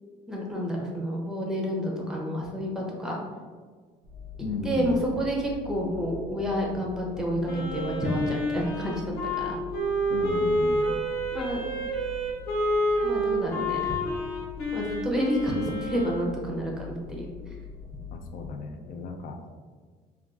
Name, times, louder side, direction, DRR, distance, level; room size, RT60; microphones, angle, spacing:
voice 1, 0.3-3.2 4.6-9.0 9.4-9.6 11.3-11.6 13.0-13.9 14.7-17.3, equal, 5° right, -1 dB, 0.6 m, -29 dB
sound 1, 4.0-18.5, left 5 dB, 55° right, 0.5 m, -43 dB
voice 2, 4.4-4.9 10.1-10.9 18.1-19.6, left 4 dB, 55° left, 4 dB, 0.4 m, -35 dB
Wind instrument woodwind instrument, 7.4-16.3, equal, 70° left, 0.8 m, -29 dB
3.4 x 2.2 x 2.4 m, 1.5 s
cardioid pair, 110°, 17 cm